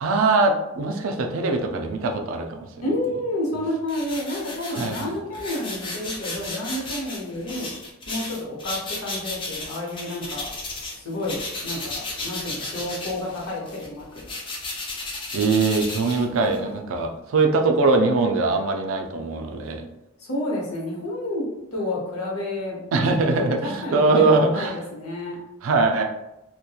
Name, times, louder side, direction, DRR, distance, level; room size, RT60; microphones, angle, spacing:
voice 1, 0.0-2.7 4.7-5.2 15.3-19.9 22.9-24.8 25.6-26.0, right 3 dB, 65° right, 4 dB, 0.3 m, -22 dB
voice 2, 2.8-7.7 8.1-10.5 10.9-11.4 11.6-14.3 20.2-21.4 21.7-22.8 23.2-23.5 23.8-25.4, left 1 dB, 80° left, -2 dB, 0.8 m, -30 dB
sound 1, 3.9-11.0 11.2-16.7, left 2 dB, 25° left, 0.3 m, -34 dB
2.8 x 2.2 x 2.3 m, 0.90 s
head